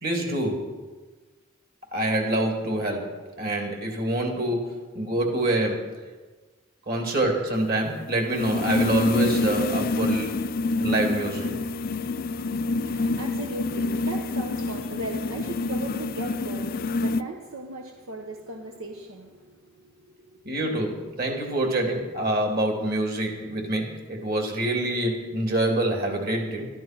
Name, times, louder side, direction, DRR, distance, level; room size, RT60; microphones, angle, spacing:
voice 1, 0.0-0.7 1.9-5.9 6.9-10.3 10.8-11.6 20.4-26.7, right 1 dB, 45° right, 2 dB, 2.8 m, -26 dB
sound 1, 7.6-17.2, left 2 dB, 40° left, 0.3 m, -27 dB
voice 2, 12.0-20.5, right 1 dB, 70° right, 2 dB, 1.2 m, -38 dB
13.0 x 12.0 x 6.1 m, 1.3 s
head